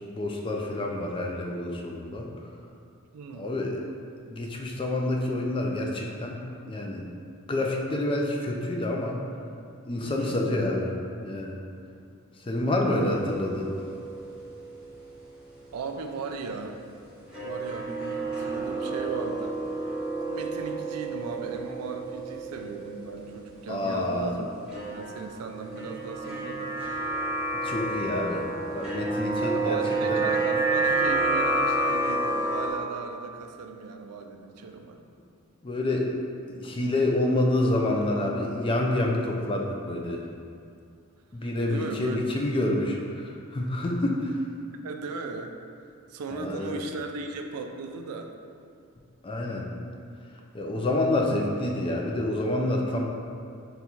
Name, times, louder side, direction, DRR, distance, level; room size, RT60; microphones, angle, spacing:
voice 1, 0.1-2.3 3.3-3.8 4.3-6.4 6.7-7.1 7.5-9.2 9.9-10.9 11.2-11.6 12.5-13.7 23.7-24.3 27.6-29.8 30.1-30.2 35.6-36.1 36.5-40.2 41.3-44.4 46.3-46.8 49.2-49.7 50.5-53.0, left 1 dB, 25° left, 0 dB, 0.4 m, -28 dB
voice 2, 3.1-3.5 10.0-10.4 12.9-13.3 15.7-16.8 17.4-26.8 28.8-28.9 29.4-35.0 41.7-42.2 44.8-45.5 46.1-48.3, right 4 dB, 90° right, 5 dB, 0.4 m, -37 dB
sound 1, 12.8-15.4 15.6-15.7 17.3-23.8 24.7-32.7, right 2 dB, 5° right, 1.2 m, -30 dB
4.0 x 2.4 x 4.3 m, 2.4 s
head